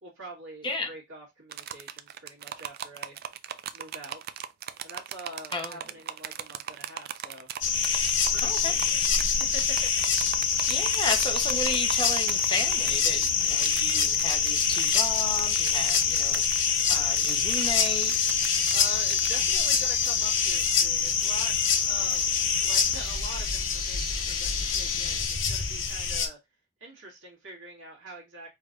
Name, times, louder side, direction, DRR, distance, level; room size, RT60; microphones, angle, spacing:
voice 1, 0.0-3.2 3.7-4.2 4.8-7.5 8.3-9.9 10.2-10.4 18.7-21.5 21.8-22.3 22.6-26.4 26.8-28.5, right 1 dB, 90° right, 1.7 m, -44 dB
sound 1, 1.5-19.4, right 9 dB, 50° right, 0.4 m, -39 dB
voice 2, 5.5-5.8 8.4-8.7 10.7-16.4 16.9-18.1, left 3 dB, 25° left, 1.0 m, -33 dB
sound 2, 7.6-26.3, left 6 dB, 65° left, 1.0 m, -25 dB
4.8 x 3.2 x 2.5 m
head